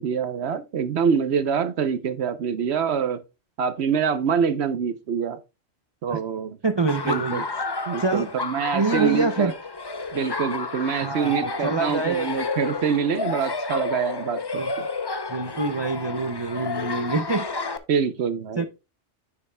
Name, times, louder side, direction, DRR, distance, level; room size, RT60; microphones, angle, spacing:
voice 1, 0.0-3.2 3.6-5.4 6.0-6.6 7.0-7.4 7.9-9.5 10.1-14.9 17.9-18.7, right 7 dB, 70° right, 1.0 m, -25 dB
voice 2, 6.6-7.4 8.0-8.3 8.7-9.5 11.0-12.3 14.6-14.7 15.3-17.5 18.6-18.7, right 3 dB, 35° right, 0.4 m, -25 dB
Laughter, 6.9-17.8, left 3 dB, 30° left, 0.5 m, -31 dB
9.8 x 7.0 x 2.2 m
omnidirectional pair, 1.2 m